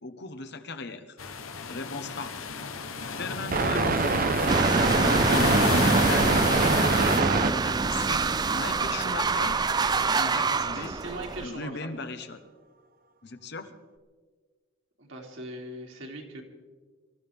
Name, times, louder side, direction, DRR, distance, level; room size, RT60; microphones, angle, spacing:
voice 1, 0.0-1.2 1.7-2.3 3.2-4.2 4.6-5.5 5.9-7.3 7.5-8.2 8.5-9.7 10.1-11.0 11.4-12.4 13.2-13.7, left 3 dB, 55° left, 8 dB, 1.2 m, -37 dB
sound 1, 1.2-7.2, left 4 dB, 85° left, 1.1 m, -31 dB
sound 2, 3.0-7.5, right 3 dB, 45° right, 0.7 m, -25 dB
sound 3, 4.5-11.5, right 4 dB, 20° right, 0.4 m, -26 dB
voice 2, 10.7-11.9 15.0-16.4, right 1 dB, 70° right, 0 dB, 3.0 m, -40 dB
25.0 x 14.5 x 3.6 m, 1.5 s
head